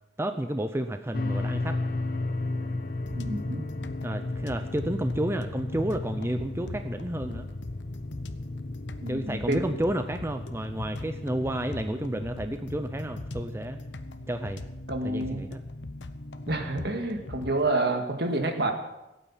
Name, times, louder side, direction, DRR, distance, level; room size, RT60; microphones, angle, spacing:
voice 1, 0.2-1.8 4.0-7.5 9.1-13.8 14.3-14.6 15.0-15.6, right 1 dB, 15° right, 8 dB, 0.6 m, -31 dB
sound 1, 1.1-13.5, left 2 dB, 50° left, 0.9 m, -35 dB
sound 2, 3.0-17.7, left 2 dB, 80° left, 0.9 m, -41 dB
voice 2, 3.1-3.6 9.0-9.6 14.9-15.5 16.5-18.7, right 2 dB, 60° right, 4 dB, 2.0 m, -28 dB
16.5 x 9.1 x 7.3 m, 0.98 s
head